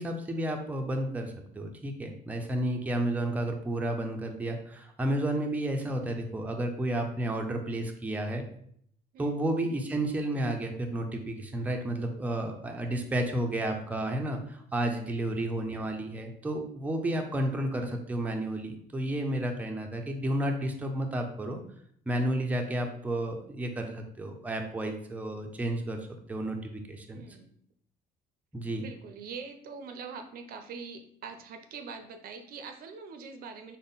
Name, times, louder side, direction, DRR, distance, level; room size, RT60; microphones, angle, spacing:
voice 1, 0.0-8.4 9.2-21.6 22.1-27.2 28.5-28.9, right 1 dB, 10° right, 3 dB, 0.5 m, -31 dB
voice 2, 15.0-15.4 27.1-27.5 28.8-33.8, right 5 dB, 60° right, 7 dB, 0.5 m, -43 dB
3.6 x 2.1 x 3.9 m, 0.67 s
cardioid pair, 110°, 17 cm